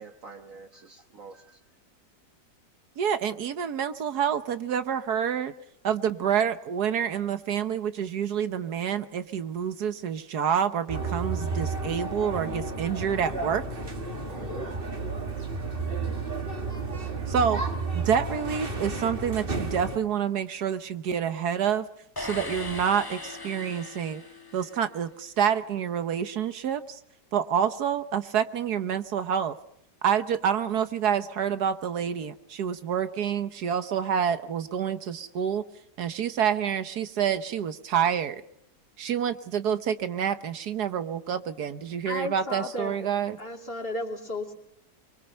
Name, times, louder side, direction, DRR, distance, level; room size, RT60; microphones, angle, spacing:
voice 1, 0.0-1.6 14.3-14.8, right 5 dB, 55° right, 4 dB, 1.6 m, -45 dB
voice 2, 3.0-5.5 5.8-13.6 17.3-17.6 17.9-21.9 22.2-24.2 24.5-27.0 27.3-29.5 30.0-35.6 36.0-38.4 39.0-43.4, right 8 dB, 70° right, 11 dB, 1.5 m, -28 dB
sound 1, 10.9-20.0, right 3 dB, 35° right, 2.1 m, -32 dB
sound 2, 22.2-25.0, left 3 dB, 15° left, 1.2 m, -39 dB
voice 3, 42.0-43.1 43.4-44.5, left 2 dB, 35° left, 2 dB, 2.9 m, -34 dB
24.0 x 23.5 x 5.7 m, 0.75 s
omnidirectional pair, 1.8 m